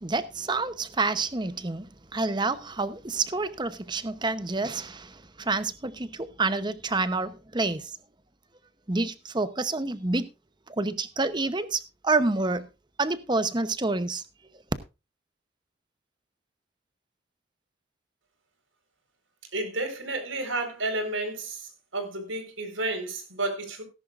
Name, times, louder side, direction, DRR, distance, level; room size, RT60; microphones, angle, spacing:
voice 1, 0.0-5.1 5.5-7.8 8.9-10.3 10.8-12.7 13.0-14.2, right 3 dB, 20° right, 0.8 m, -28 dB
voice 2, 19.5-23.8, right 2 dB, 75° right, 4.5 m, -31 dB
18.0 x 11.0 x 2.5 m
head